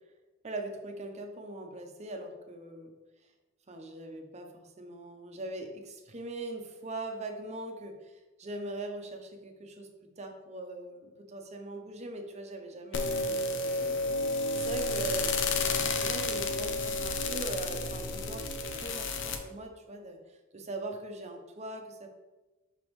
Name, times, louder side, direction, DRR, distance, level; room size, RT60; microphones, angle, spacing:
voice 1, 0.4-2.9 3.7-9.9 10.2-15.4 15.8-20.2 20.5-22.1, right 1 dB, 35° right, 4 dB, 0.7 m, -41 dB
sound 1, 12.9-19.4, left 3 dB, 60° left, 0.6 m, -31 dB
6.0 x 5.2 x 3.1 m, 1.1 s
head